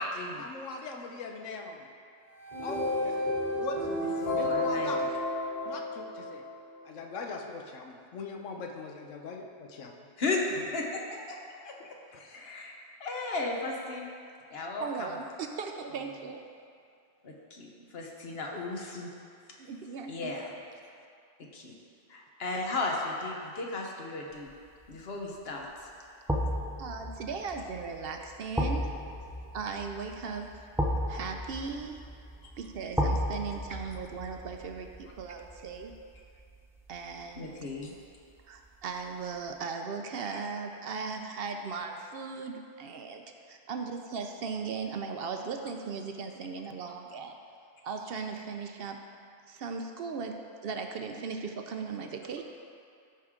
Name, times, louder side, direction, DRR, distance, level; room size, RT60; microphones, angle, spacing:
voice 1, 0.0-1.9 2.6-3.3 3.6-5.0 5.7-6.4 6.8-9.9 12.1-12.2, left 3 dB, 85° left, 2 dB, 1.2 m, -40 dB
sound 1, 2.3-6.6, left 1 dB, 30° left, 2.5 m, -31 dB
voice 2, 4.2-5.1 10.2-10.4 10.7-11.0 11.3-11.4 11.6-11.7 12.1-12.7 13.0-14.1 14.5-14.9 17.2-19.1 20.1-20.5 21.5-21.7 22.1-24.5 24.9-25.7 32.4-32.5 37.4-37.9, left 3 dB, 55° left, -1 dB, 1.2 m, -35 dB
voice 3, 14.5-16.4 19.6-20.4 26.8-28.9 29.5-30.5 31.1-32.0 32.6-35.9 36.9-38.0 38.5-43.2 43.5-47.3 47.8-49.0 49.5-50.4 50.6-52.4, right 5 dB, 60° right, 4 dB, 0.7 m, -38 dB
sound 2, 24.5-24.9 26.3-37.3 37.6-37.7, equal, 5° right, 0.3 m, -34 dB
13.5 x 4.8 x 3.7 m, 2.4 s
omnidirectional pair, 1.3 m